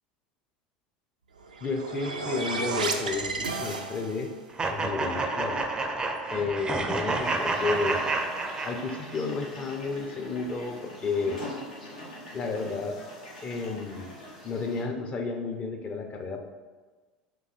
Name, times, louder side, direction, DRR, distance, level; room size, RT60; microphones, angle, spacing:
sound 1, 1.4-4.4, right 3 dB, 80° right, 0.4 m, -32 dB
voice 1, 1.6-4.3 4.7-5.6 6.3-8.0 8.6-11.4 12.3-13.0 13.4-14.1 14.4-16.4, left 4 dB, 30° left, 4 dB, 0.6 m, -32 dB
sound 2, 4.6-9.2, right 3 dB, 20° right, 0.5 m, -29 dB
sound 3, 7.2-14.8, left 1 dB, 80° left, 1.0 m, -43 dB
3.8 x 2.8 x 4.4 m, 1.3 s
figure-of-eight pair, 75°, 4 cm